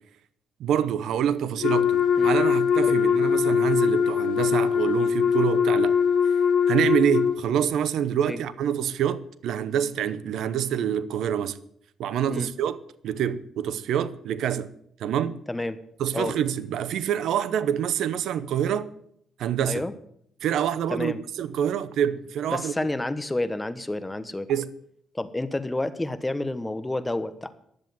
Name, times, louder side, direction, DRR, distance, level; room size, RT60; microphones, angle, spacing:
voice 1, 0.6-6.0 6.7-11.6 12.0-12.8 13.0-14.7 15.0-15.4 16.0-18.9 19.4-19.9 20.4-21.1 21.4-22.9 24.5-24.7, right 9 dB, 75° right, 0.7 m, -26 dB
Wind instrument woodwind instrument, 1.6-7.4, left 7 dB, 70° left, 2.0 m, -22 dB
voice 2, 15.5-15.8 16.1-16.4 19.6-19.9 20.9-21.2 22.5-24.5 25.1-27.5, left 2 dB, 15° left, 1.1 m, -29 dB
11.0 x 7.6 x 9.2 m
cardioid pair, 90°, 0 cm